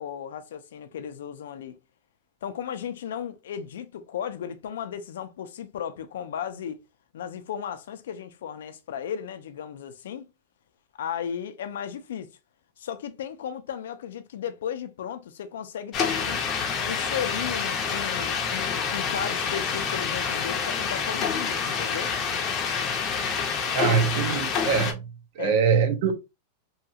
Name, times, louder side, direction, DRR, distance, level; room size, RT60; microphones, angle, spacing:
voice 1, 0.0-1.8 2.4-6.8 7.1-10.3 11.0-12.3 12.8-16.4 16.8-22.1 25.4-25.6, left 8 dB, 90° left, 0.4 m, -35 dB
sound 1, 15.9-24.9, left 6 dB, 25° left, 0.5 m, -27 dB
voice 2, 23.7-25.0 25.4-26.1, right 6 dB, 50° right, 0.6 m, -23 dB
2.8 x 2.3 x 2.7 m
supercardioid pair, 165°, 0 cm